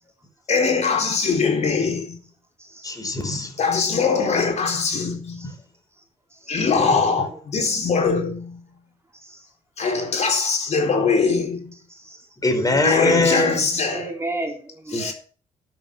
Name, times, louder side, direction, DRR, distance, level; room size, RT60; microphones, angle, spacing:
voice 1, 0.5-2.2 3.6-5.5 6.5-8.6 9.8-11.7 12.8-14.1 14.9-15.1, left 5 dB, 50° left, 4.3 m, -22 dB
voice 2, 2.8-3.5 6.8-6.9 12.4-13.6 14.9-15.1, left 2 dB, 25° left, 4.7 m, -22 dB
voice 3, 6.3-6.6 7.3-7.8 9.2-9.4 11.7-12.3 13.7-15.1, right 2 dB, 20° right, 3.8 m, -35 dB
12.5 x 7.6 x 7.3 m
supercardioid pair, 65°, 14 cm